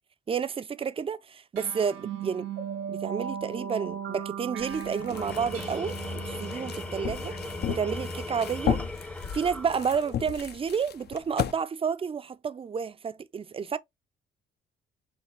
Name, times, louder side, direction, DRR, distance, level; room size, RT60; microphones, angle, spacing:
voice 1, 0.3-2.5 2.9-6.0 6.3-7.3 7.7-8.8 9.3-13.8, right 6 dB, 30° right, 0.4 m, -30 dB
sound 1, 1.5-8.4, right 8 dB, 85° right, 1.2 m, -38 dB
sound 2, 4.6-11.5, left 9 dB, 55° left, 0.6 m, -35 dB
Tools, 5.0-10.4, left 2 dB, 5° left, 0.7 m, -38 dB
5.1 x 2.9 x 3.1 m
cardioid pair, 90°, 20 cm